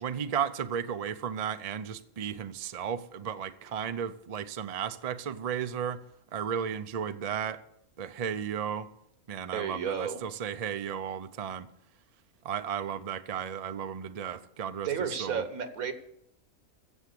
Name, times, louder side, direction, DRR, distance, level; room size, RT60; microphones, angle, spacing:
voice 1, 0.0-6.0 6.3-7.6 8.0-8.9 9.3-11.7 12.4-15.4, right 8 dB, 55° right, 0.4 m, -34 dB
voice 2, 9.5-10.2 14.8-15.9, right 7 dB, 75° right, 1.7 m, -32 dB
15.5 x 7.2 x 6.7 m
omnidirectional pair, 1.5 m